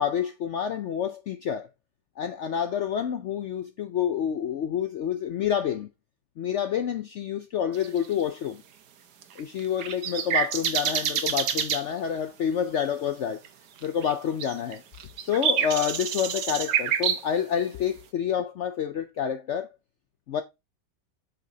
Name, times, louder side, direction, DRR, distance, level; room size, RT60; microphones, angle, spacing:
voice 1, 0.0-1.7 2.2-5.9 6.4-8.6 9.4-13.4 13.8-14.8 15.3-19.7 20.3-20.4, left 8 dB, 70° left, 0.7 m, -28 dB
sound 1, 7.7-8.1 9.2-11.8 13.4-13.5 13.8-14.1 14.4-17.2, right 8 dB, 70° right, 1.4 m, -27 dB
7.9 x 6.0 x 2.7 m
omnidirectional pair, 1.8 m